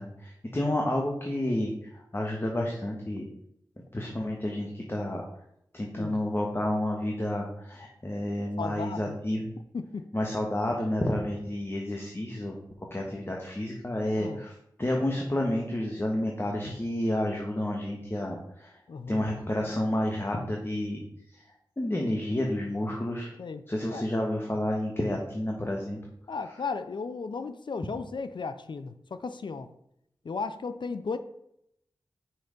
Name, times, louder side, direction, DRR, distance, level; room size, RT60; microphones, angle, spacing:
voice 1, 0.0-3.2 3.9-5.2 5.7-9.5 10.1-12.6 12.9-14.5 14.8-18.8 19.1-21.4 21.8-23.3 23.7-26.0 26.4-26.7, left 1 dB, 30° left, 1.5 m, -30 dB
voice 2, 8.6-9.2 9.7-10.1 14.2-14.4 18.9-19.2 23.4-23.6 23.9-24.0 26.3-29.7 30.2-31.2, left 4 dB, 70° left, 0.6 m, -35 dB
5.5 x 5.5 x 5.2 m
cardioid pair, 40°, 8 cm